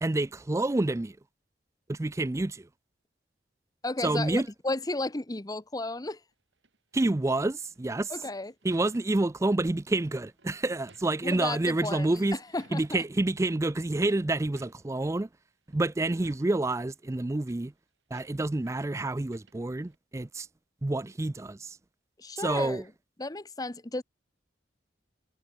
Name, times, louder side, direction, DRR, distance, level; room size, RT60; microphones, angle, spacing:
voice 1, 0.0-1.2 1.9-2.7 4.0-4.5 6.9-8.2 8.6-12.4 12.7-15.3 15.7-17.7 18.1-20.5 20.8-21.8 22.4-22.8, right 2 dB, 15° right, 0.4 m, -28 dB
voice 2, 3.8-6.2 8.1-8.5 11.2-12.2 12.5-12.8 22.2-22.8 23.2-24.0, left 2 dB, 20° left, 0.9 m, -33 dB
sound 1, 6.3-9.4 10.3-11.6 11.9-13.1 13.7-14.1 14.4-15.1 15.5-16.9 17.2-17.5 18.1-18.9 19.2-20.0, right 4 dB, 85° right, 5.4 m, -60 dB
head